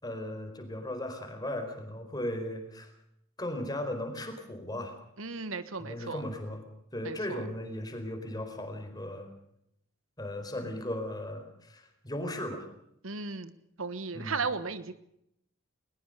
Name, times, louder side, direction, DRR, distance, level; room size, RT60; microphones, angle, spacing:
voice 1, 0.0-2.9 3.4-4.9 5.8-6.6 6.9-9.3 10.2-12.6 14.1-14.3, left 1 dB, 20° left, 5 dB, 4.5 m, -37 dB
voice 2, 5.2-6.2 7.0-7.4 13.0-13.5 13.8-14.9, right 4 dB, 70° right, 13 dB, 1.3 m, -35 dB
21.0 x 21.0 x 6.8 m, 0.77 s
head